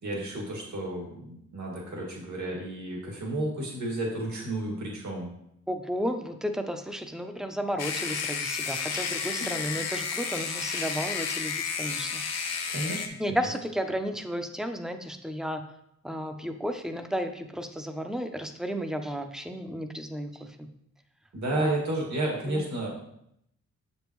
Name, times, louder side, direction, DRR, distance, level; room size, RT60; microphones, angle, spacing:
voice 1, 0.0-5.3 12.7-13.5 21.3-22.9, right 1 dB, 75° right, -2 dB, 2.0 m, -32 dB
voice 2, 5.7-12.2 13.2-15.6 16.0-20.7 21.6-21.7 22.5-22.7, equal, ahead, 7 dB, 0.4 m, -33 dB
sound 1, 7.8-13.1, left 6 dB, 60° left, 0.8 m, -32 dB
7.4 x 5.3 x 3.0 m, 0.76 s
wide cardioid pair, 150°, 29 cm